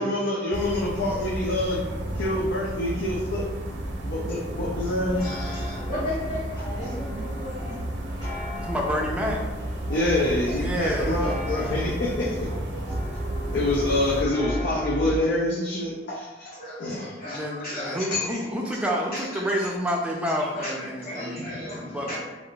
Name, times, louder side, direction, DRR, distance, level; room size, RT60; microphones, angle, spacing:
voice 1, 0.0-1.8 2.2-3.4 3.7-5.2 9.9-12.5 13.5-16.5 16.8-17.1 18.1-18.2, left 1 dB, 80° left, -5 dB, 0.5 m, -26 dB
sound 1, 0.5-14.2, right 1 dB, 90° right, 0.5 m, -33 dB
sound 2, 4.5-15.2, left 1 dB, 25° left, 0.7 m, -36 dB
voice 2, 5.2-7.8 16.5-19.7 20.4-22.2, left 1 dB, 55° left, -9 dB, 1.3 m, -36 dB
voice 3, 8.6-9.4 10.5-11.3 17.2-22.2, equal, 5° right, -1 dB, 0.4 m, -29 dB
3.6 x 2.4 x 2.3 m, 1.2 s
head